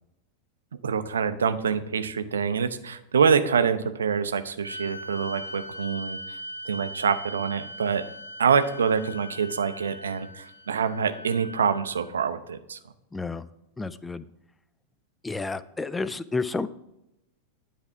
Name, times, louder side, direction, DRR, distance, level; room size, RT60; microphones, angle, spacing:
voice 1, 0.8-6.4 6.7-8.0 8.4-12.8, right 6 dB, 70° right, 11 dB, 0.5 m, -25 dB
sound 1, 4.6-12.1, equal, 85° left, 0.6 m, -40 dB
voice 2, 13.1-13.4 13.8-14.3 15.2-16.7, left 3 dB, 10° left, 16 dB, 0.3 m, -30 dB
9.9 x 3.4 x 5.6 m, 0.88 s
figure-of-eight pair, 90°, 0 cm